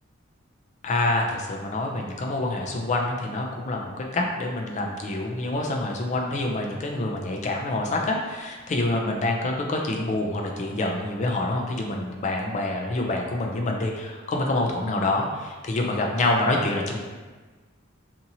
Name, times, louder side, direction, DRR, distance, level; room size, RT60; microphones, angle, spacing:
voice 1, 0.8-17.0, left 2 dB, 35° left, 0 dB, 0.4 m, -26 dB
2.8 x 2.6 x 2.7 m, 1.4 s
head